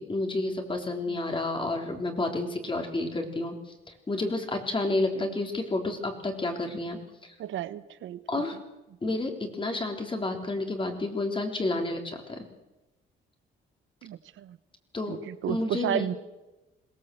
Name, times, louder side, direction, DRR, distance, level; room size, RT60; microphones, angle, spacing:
voice 1, 0.0-3.6 4.1-7.3 8.3-8.6 9.0-12.5 14.9-15.2 15.5-16.1, left 2 dB, 25° left, 4 dB, 3.8 m, -30 dB
voice 2, 7.4-8.2 14.0-14.6 15.1-16.1, right 11 dB, 80° right, 15 dB, 1.1 m, -33 dB
22.0 x 17.5 x 7.9 m, 1.1 s
cardioid pair, 90°, 20 cm